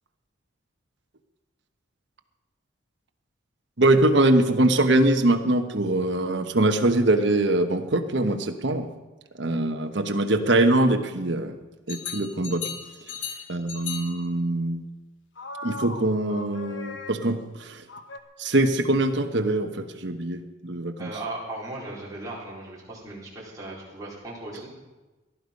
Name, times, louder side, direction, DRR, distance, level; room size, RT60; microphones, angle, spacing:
voice 1, 3.8-8.8 9.4-11.5 11.9-12.7 13.5-14.8 15.6-17.8 18.4-21.1, right 2 dB, 60° right, 6 dB, 1.2 m, -23 dB
sound 1, 11.9-14.3 15.4-17.5 17.9-18.2, left 5 dB, 70° left, 1.4 m, -37 dB
voice 2, 13.1-13.4 21.0-24.7, right 2 dB, 15° right, -6 dB, 4.3 m, -37 dB
18.5 x 11.5 x 5.3 m, 1.2 s
head